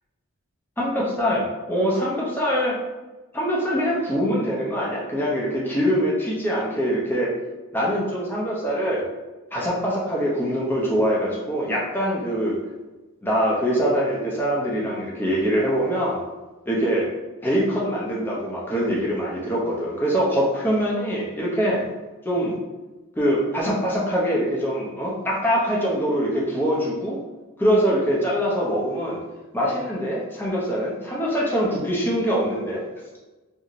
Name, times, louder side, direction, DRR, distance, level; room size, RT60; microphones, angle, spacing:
voice 1, 0.8-2.8 3.3-7.3 7.7-9.1 9.5-12.5 13.2-16.2 16.7-17.1 17.4-21.8 22.2-22.5 23.2-27.2 27.6-29.2 29.5-32.8, equal, 10° left, -5 dB, 0.6 m, -23 dB
2.9 x 2.6 x 2.5 m, 1.2 s
head